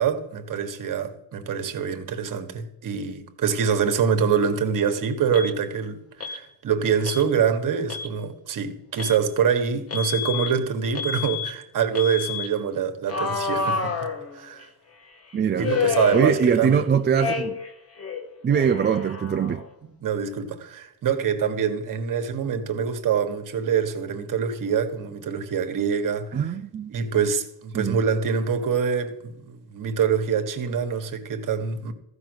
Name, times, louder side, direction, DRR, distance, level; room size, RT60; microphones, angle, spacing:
voice 1, 0.0-6.0 6.3-13.9 14.3-14.6 15.6-16.8 20.0-26.5 26.9-31.9, right 7 dB, 55° right, 1.6 m, -25 dB
Alarm, 5.3-5.5 6.2-6.4 7.0-7.3 7.8-8.1 9.0-9.2 9.9-10.5 11.0-11.5 12.0-12.5 13.1-14.6 15.6-16.8 17.2-17.7 18.0-19.7, left 5 dB, 35° left, 1.5 m, -29 dB
voice 2, 15.3-15.7 16.1-17.6 18.4-19.6 26.3-26.9 27.7-28.0, right 7 dB, 30° right, 0.5 m, -22 dB
14.5 x 5.9 x 8.0 m
cardioid pair, 140°, 39 cm